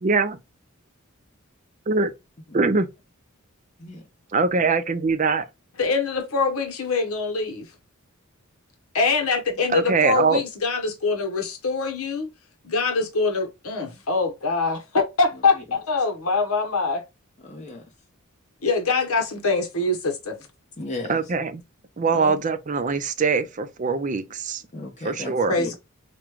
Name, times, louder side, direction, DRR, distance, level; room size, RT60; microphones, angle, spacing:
voice 1, 0.0-0.4 1.9-2.1 2.5-2.9 4.3-5.4 9.7-10.4 21.1-21.6 22.0-24.6 25.0-25.5, right 4 dB, 35° right, 0.5 m, -22 dB
voice 2, 5.8-7.7 8.9-12.3 12.6-17.0 18.6-20.4 22.1-22.4 25.5-25.8, left 4 dB, 80° left, 0.9 m, -24 dB
voice 3, 17.4-17.8 20.8-21.1 24.7-25.7, left 2 dB, 35° left, 0.8 m, -35 dB
4.9 x 2.2 x 3.0 m
head